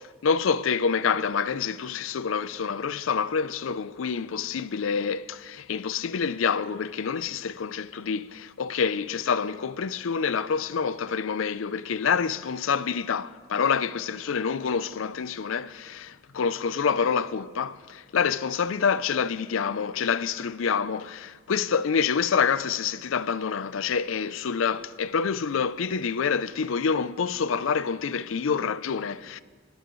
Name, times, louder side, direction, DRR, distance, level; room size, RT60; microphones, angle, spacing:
voice 1, 0.2-29.4, left 6 dB, 75° left, 0.5 m, -27 dB
24.0 x 13.0 x 3.1 m
head